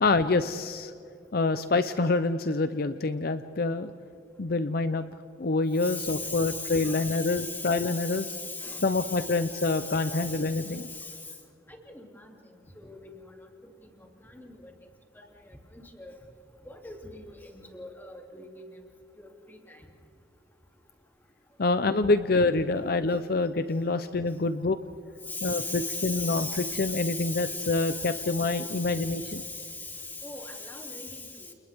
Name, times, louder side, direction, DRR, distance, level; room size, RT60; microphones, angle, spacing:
voice 1, 0.0-0.9 1.3-3.9 4.4-5.0 5.4-8.3 8.8-10.9 21.6-24.8 25.4-29.4, left 3 dB, 55° left, 11 dB, 0.6 m, -26 dB
voice 2, 5.8-11.2 11.7-12.3 12.8-13.3 14.3-14.7 15.7-16.2 16.6-18.8 19.2-19.8 25.3-31.5, left 3 dB, 10° left, 1 dB, 2.8 m, -38 dB
29.5 x 29.0 x 3.6 m, 2.6 s
head